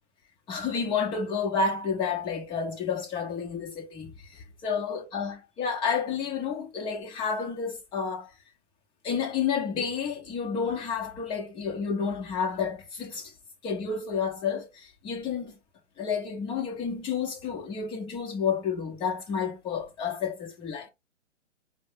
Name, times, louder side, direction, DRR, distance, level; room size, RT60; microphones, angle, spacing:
voice 1, 0.5-8.3 9.0-13.3 13.6-15.6 16.0-20.9, left 6 dB, 15° left, 0.8 m, -30 dB
4.6 x 2.1 x 3.6 m
hypercardioid pair, 135°, 37 cm